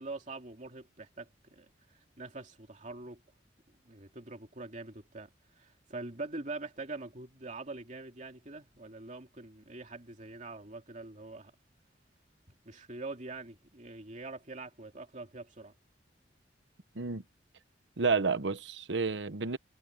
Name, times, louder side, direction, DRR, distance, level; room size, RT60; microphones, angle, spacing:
voice 1, 0.0-1.7 2.2-3.2 3.8-5.3 5.6-11.5 12.7-15.7, right 3 dB, 40° right, 2.7 m, -44 dB
voice 2, 18.0-19.6, right 4 dB, 80° right, 1.0 m, -30 dB
head